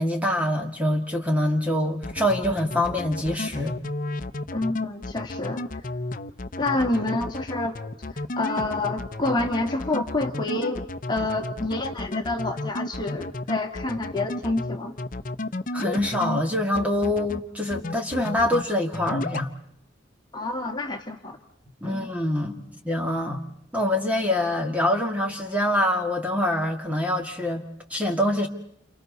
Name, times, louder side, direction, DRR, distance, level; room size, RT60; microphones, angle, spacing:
voice 1, 0.0-3.7 15.7-19.5 21.8-23.4 23.7-27.6 27.9-28.5, left 1 dB, 5° right, 2 dB, 2.2 m, -25 dB
sound 1, 2.0-16.4 16.7-17.4 17.7-18.6 18.9-19.5, left 2 dB, 45° left, 0.9 m, -32 dB
voice 2, 4.5-5.6 6.6-7.7 8.4-10.8 11.1-14.9 20.3-21.4 21.8-22.1, left 2 dB, 25° left, 2 dB, 2.2 m, -28 dB
30.0 x 29.0 x 4.1 m, 0.75 s
head